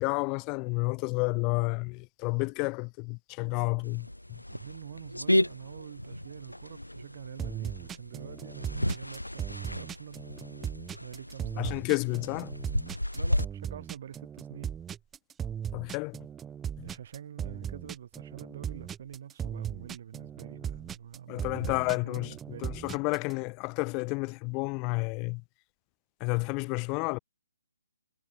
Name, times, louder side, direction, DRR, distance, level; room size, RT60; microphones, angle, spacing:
voice 1, 0.0-4.4 11.6-12.5 15.7-16.2 21.3-22.3 22.6-25.4 26.2-27.2, left 30 dB, 20° left, 1.1 m, -31 dB
sound 1, 3.8-13.4, left 1 dB, 90° left, 0.3 m, -33 dB
voice 2, 4.5-10.2 11.0-11.8 13.1-14.8 16.8-22.7, right 9 dB, 40° right, 3.2 m, -46 dB
sound 2, 7.4-23.3, right 8 dB, 10° right, 0.7 m, -38 dB
figure-of-eight pair, 135°, 0 cm